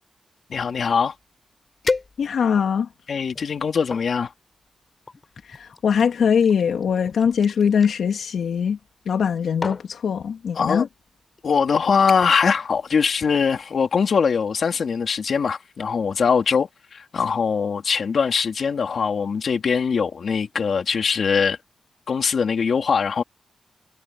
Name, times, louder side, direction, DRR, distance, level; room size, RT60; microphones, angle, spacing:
voice 1, 0.5-1.1 3.1-4.3 10.5-10.9 11.4-21.6 22.1-23.2, left 6 dB, 55° left, 3.1 m, -22 dB
sound 1, 1.2-1.3 1.8-2.6 3.2-4.1 5.1-7.9 9.0-9.3 9.6-9.9 10.8-11.0 11.4-11.7 12.1-12.5 12.8-13.2 13.5-13.6, left 3 dB, 30° left, 4.8 m, -33 dB
voice 2, 2.2-2.9 5.5-8.8 9.1-10.9, left 7 dB, 75° left, 2.4 m, -21 dB
wide cardioid pair, 155°, 0 cm